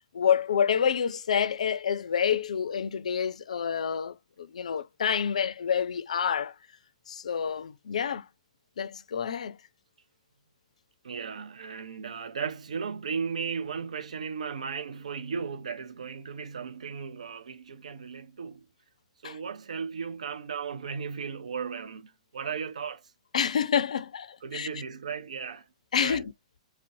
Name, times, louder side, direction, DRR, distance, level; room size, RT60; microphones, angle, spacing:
voice 1, 0.1-6.5 7.1-8.2 8.8-9.5 19.2-19.4 23.3-24.7 25.9-26.3, left 7 dB, 75° left, 0.3 m, -28 dB
voice 2, 11.0-18.6 19.2-23.1 24.4-25.7 26.0-26.3, right 6 dB, 75° right, 0.3 m, -36 dB
2.5 x 2.0 x 2.5 m
hypercardioid pair, 115°, 4 cm